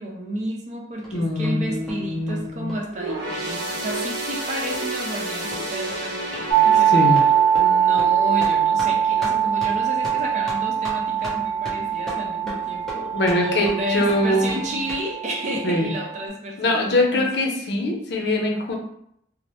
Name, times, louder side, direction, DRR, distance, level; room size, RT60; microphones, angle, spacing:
voice 1, 0.0-6.9 7.5-17.3, right 1 dB, 40° right, 0 dB, 0.5 m, -31 dB
sound 1, 1.0-15.0, equal, ahead, 0.6 m, -39 dB
voice 2, 1.1-2.7 6.9-7.2 13.1-14.6 15.6-15.9 16.6-18.8, left 1 dB, 65° left, 0 dB, 0.6 m, -22 dB
sound 2, 2.9-10.6 11.0-11.2 12.1-12.2, right 1 dB, 80° right, 0.8 m, -32 dB
sound 3, 6.5-16.3, right 9 dB, 30° left, 1.3 m, -22 dB
2.9 x 2.0 x 3.0 m, 0.72 s
head